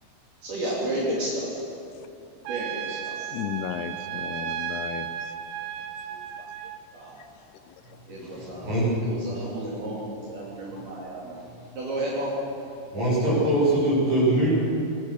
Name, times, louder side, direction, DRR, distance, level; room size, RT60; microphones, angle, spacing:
voice 1, 0.4-1.6 2.5-3.3 6.9-7.1 8.1-11.4 11.7-12.3, right 1 dB, 55° right, -5 dB, 4.7 m, -32 dB
Trumpet, 2.4-6.8, right 9 dB, 80° right, 3.1 m, -34 dB
voice 2, 3.3-5.1 6.4-6.5 10.8-10.9, left 10 dB, 80° left, 11 dB, 2.4 m, -34 dB
voice 3, 8.2-9.0 12.9-14.5, right 1 dB, 35° right, -8 dB, 8.4 m, -23 dB
21.5 x 19.5 x 6.6 m, 2.8 s
omnidirectional pair, 5.4 m